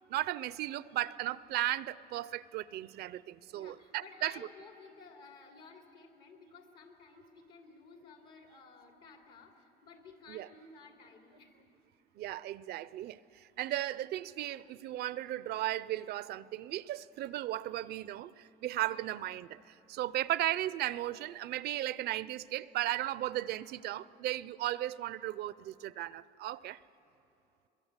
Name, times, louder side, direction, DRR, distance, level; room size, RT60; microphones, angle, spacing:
voice 1, 0.1-4.3 10.3-10.5 12.2-26.8, right 14 dB, 70° right, 0.5 m, -36 dB
voice 2, 3.5-11.7 18.8-19.2 20.1-20.3, left 4 dB, 80° left, 3.1 m, -55 dB
22.5 x 22.0 x 8.1 m
cardioid pair, 110°, 17 cm